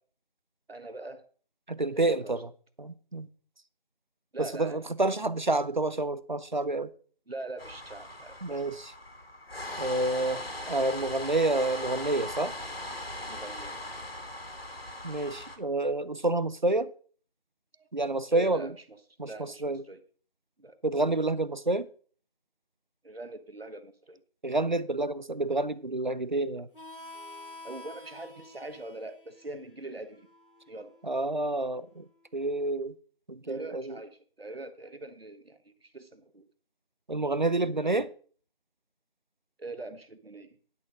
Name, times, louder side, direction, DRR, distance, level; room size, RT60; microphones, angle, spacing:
voice 1, 0.7-1.3 1.9-2.4 4.3-4.9 7.3-8.6 13.2-13.8 17.7-17.9 18.3-20.0 20.6-20.8 23.0-24.2 27.6-30.3 30.7-30.9 33.5-36.5 37.8-38.0 39.6-40.6, right 2 dB, 80° right, 1.3 m, -43 dB
voice 2, 1.7-2.5 2.8-3.3 4.4-6.9 8.4-8.9 9.8-12.5 15.0-16.9 17.9-18.7 19.2-19.8 20.8-21.9 24.4-26.7 31.0-32.0 32.3-33.0 33.3-33.9 37.1-38.1, right 2 dB, 50° right, 0.7 m, -29 dB
sound 1, 7.6-15.6, left 1 dB, 80° left, 2.4 m, -39 dB
Harmonica, 26.7-32.0, left 2 dB, 65° left, 1.7 m, -49 dB
10.5 x 6.7 x 5.0 m
figure-of-eight pair, 180°, 30 cm